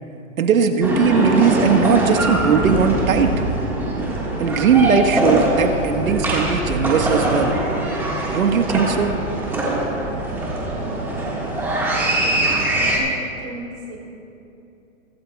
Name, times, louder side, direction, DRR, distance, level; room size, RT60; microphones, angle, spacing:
voice 1, 0.4-3.3 4.4-7.5 8.3-9.1, right 6 dB, 75° right, 6 dB, 1.5 m, -18 dB
sound 1, 0.8-13.0, right 1 dB, 5° right, 1.7 m, -22 dB
voice 2, 12.2-14.0, right 2 dB, 30° right, -1 dB, 2.9 m, -36 dB
23.5 x 12.5 x 2.3 m, 2.8 s
hypercardioid pair, 155°, 41 cm